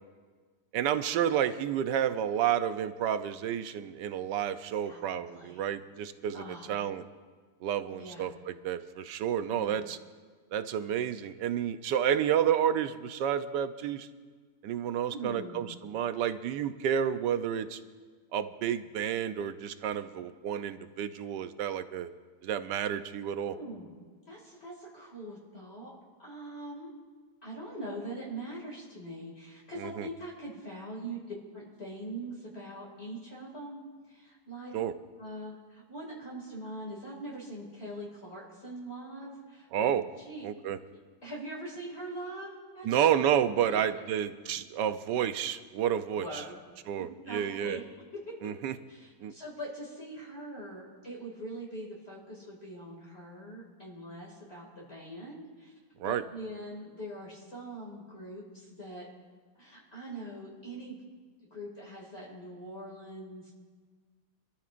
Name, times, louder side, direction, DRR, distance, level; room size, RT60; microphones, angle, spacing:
voice 1, 0.7-6.4 6.7-7.0 7.6-10.0 10.5-14.1 14.6-17.8 18.3-22.1 22.4-23.6 29.8-30.1 34.7-34.9 39.7-40.0 40.4-40.8 42.8-46.4 46.9-47.8 48.4-48.7 49.2-49.3 56.0-56.2, right 9 dB, 85° right, 11 dB, 1.3 m, -30 dB
voice 2, 4.8-5.6 6.3-6.7 8.0-8.3 9.5-9.8 15.1-15.8 23.4-23.9 24.3-26.9 27.4-31.2 31.5-33.8 34.1-34.7 35.2-39.9 40.2-40.5 41.2-42.9 43.6-44.1 46.2-46.6 47.0-47.8 48.3-48.6 48.9-55.7 56.0-59.1 59.6-61.0 61.5-63.5, right 1 dB, 35° left, -4 dB, 2.7 m, -43 dB
26.0 x 13.5 x 2.5 m, 1.5 s
omnidirectional pair, 1.8 m